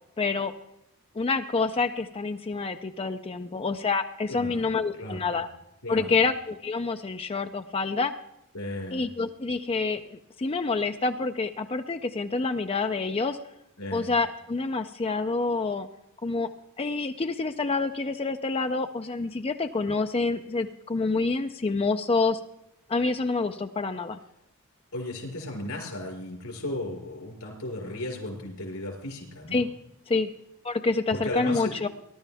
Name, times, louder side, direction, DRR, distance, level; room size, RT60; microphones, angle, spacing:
voice 1, 0.2-0.5 1.2-5.5 5.9-8.1 8.9-13.4 13.9-15.9 16.2-16.5 16.8-22.4 22.9-24.2 29.5-29.7 30.1-30.3 30.6-31.9, left 3 dB, 25° left, 7 dB, 0.5 m, -27 dB
voice 2, 4.3-5.4 5.8-6.1 8.5-9.0 13.8-14.1 24.9-29.6 31.1-31.7, left 1 dB, 85° left, 0 dB, 4.6 m, -35 dB
19.5 x 11.5 x 3.5 m, 0.84 s
head